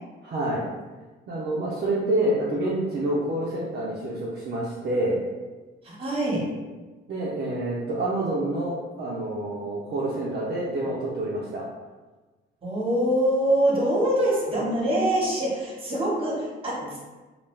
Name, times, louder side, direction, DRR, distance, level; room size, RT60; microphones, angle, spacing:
voice 1, 0.2-0.6 1.3-5.2 7.1-11.6, right 1 dB, 55° right, -6 dB, 0.6 m, -27 dB
voice 2, 5.8-6.5 12.6-17.0, right 1 dB, 30° right, -5 dB, 1.1 m, -24 dB
2.3 x 2.2 x 3.2 m, 1.2 s
cardioid pair, 90°, 20 cm